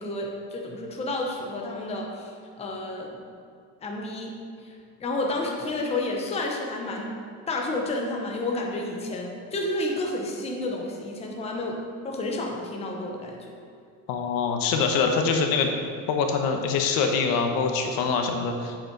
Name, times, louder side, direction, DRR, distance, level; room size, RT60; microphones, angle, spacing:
voice 1, 0.0-2.3 2.6-3.1 3.8-4.3 5.0-7.1 7.5-11.8 12.0-13.4, left 2 dB, 15° left, 0 dB, 0.9 m, -30 dB
voice 2, 14.1-15.7 16.1-18.8, left 5 dB, 65° left, 4 dB, 1.1 m, -24 dB
7.6 x 7.4 x 4.6 m, 2.4 s
cardioid pair, 165°, 37 cm